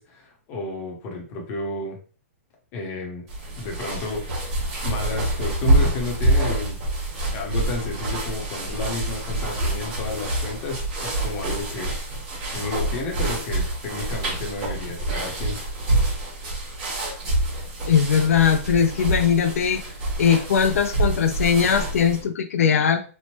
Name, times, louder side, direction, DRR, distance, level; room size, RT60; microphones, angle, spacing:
voice 1, 0.0-2.0 2.7-3.2 3.6-4.5 4.8-6.8 7.3-11.9 12.5-15.6, left 3 dB, 20° left, 0 dB, 0.7 m, -32 dB
sound 1, 3.3-22.2, right 1 dB, 25° right, 1.2 m, -26 dB
voice 2, 17.9-19.8 20.2-23.0, left 7 dB, 70° left, 6 dB, 0.4 m, -20 dB
3.0 x 2.0 x 2.9 m, 0.38 s
hypercardioid pair, 170°, 8 cm